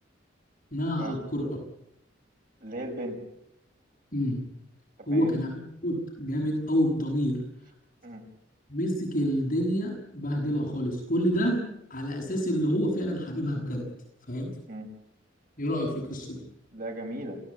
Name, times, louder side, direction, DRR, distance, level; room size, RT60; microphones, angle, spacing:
voice 1, 0.7-1.6 4.1-4.4 5.1-7.4 8.7-13.9 14.3-14.5 15.6-16.4, equal, 45° left, 1 dB, 6.8 m, -28 dB
voice 2, 2.6-3.2 5.0-5.3 8.0-8.2 14.7-14.9 16.7-17.4, right 1 dB, 50° right, 3 dB, 5.7 m, -36 dB
28.5 x 17.5 x 8.6 m, 0.79 s
head